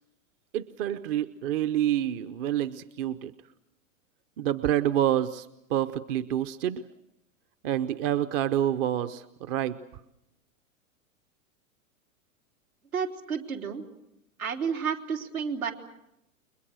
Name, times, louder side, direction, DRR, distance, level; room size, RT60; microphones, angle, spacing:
voice 1, 0.5-3.3 4.4-5.5 5.7-6.8 7.6-9.8, right 11 dB, 45° right, 13 dB, 0.9 m, -27 dB
voice 2, 12.9-13.8 14.4-15.7, right 6 dB, 80° right, 1 dB, 3.7 m, -31 dB
30.0 x 22.0 x 6.4 m, 0.83 s
hypercardioid pair, 110°, 41 cm